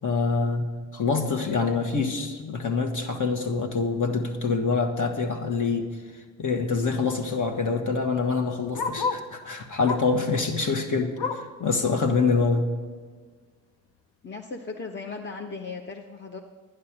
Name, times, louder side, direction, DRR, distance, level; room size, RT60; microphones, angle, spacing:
voice 1, 0.0-12.7, left 4 dB, 45° left, 3 dB, 1.8 m, -26 dB
Bark, 5.9-6.0 6.2-6.3 6.5-9.3 9.8-10.2 10.6-11.6 12.1-12.2 12.6-12.7 13.3-13.4, left 4 dB, 70° left, 1.0 m, -33 dB
voice 2, 14.2-16.4, left 4 dB, 25° left, 3 dB, 1.1 m, -37 dB
11.0 x 9.9 x 6.1 m, 1.5 s
hypercardioid pair, 45°, 41 cm